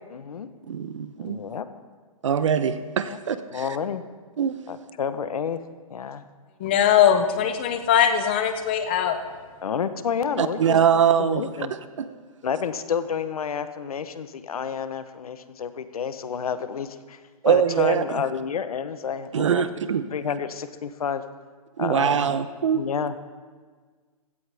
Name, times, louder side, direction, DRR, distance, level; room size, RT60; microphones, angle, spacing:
voice 1, 0.1-0.5 1.2-1.7 3.1-3.2 3.5-4.0 4.7-5.6 5.9-6.2 9.6-10.8 11.2-11.7 12.4-17.2 17.4-19.6 20.1-21.2 21.8-22.2 22.7-23.2, left 7 dB, 75° left, 12 dB, 1.0 m, -29 dB
voice 2, 0.7-1.4 2.2-3.7 4.4-4.5 10.4-12.1 17.4-18.2 19.3-20.0 21.8-22.9, right 8 dB, 55° right, 12 dB, 0.8 m, -23 dB
voice 3, 6.6-9.2, left 9 dB, 15° left, 8 dB, 0.5 m, -20 dB
16.0 x 13.5 x 3.5 m, 1.5 s
hypercardioid pair, 180°, 19 cm